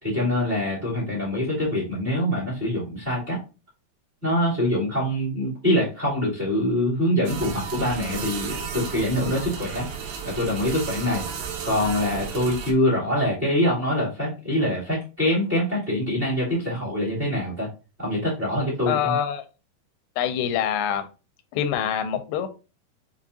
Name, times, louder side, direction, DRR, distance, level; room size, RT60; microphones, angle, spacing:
voice 1, 0.0-3.4 4.2-9.8 10.2-11.2 11.6-17.7 18.0-19.1, left 1 dB, 25° right, -6 dB, 1.4 m, -24 dB
sound 1, 7.3-12.7, right 6 dB, 75° right, 2.3 m, -33 dB
voice 2, 18.9-19.4 20.2-21.1 21.5-22.5, left 9 dB, 85° left, 10 dB, 2.7 m, -25 dB
6.5 x 2.8 x 2.6 m, 0.31 s
omnidirectional pair, 4.7 m